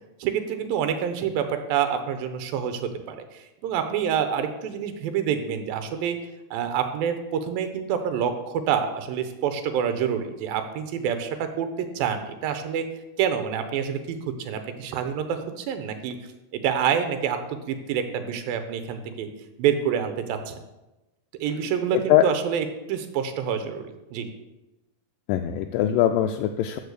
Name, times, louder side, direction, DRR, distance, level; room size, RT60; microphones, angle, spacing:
voice 1, 0.2-3.2 3.6-6.2 6.5-12.9 13.2-16.2 16.5-17.4 17.7-19.3 19.6-20.5 21.4-24.3, right 8 dB, 90° right, 8 dB, 2.7 m, -27 dB
voice 2, 21.9-22.2 25.3-26.8, left 12 dB, 80° left, 5 dB, 2.1 m, -21 dB
13.0 x 4.6 x 6.7 m, 1.0 s
omnidirectional pair, 4.0 m